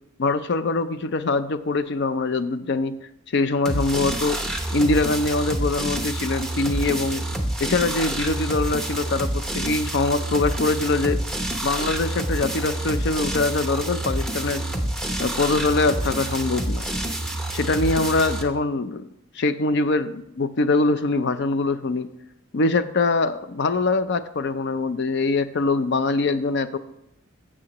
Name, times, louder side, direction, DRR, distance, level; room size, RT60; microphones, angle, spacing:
voice 1, 0.2-2.9 3.3-4.4 4.7-7.2 7.6-11.2 11.6-14.7 15.2-16.8 17.5-19.0 19.4-22.1 22.5-26.8, left 3 dB, 55° left, 12 dB, 0.5 m, -23 dB
sound 1, 3.7-18.4, right 1 dB, ahead, 0.7 m, -28 dB
12.5 x 7.5 x 3.0 m, 0.84 s
head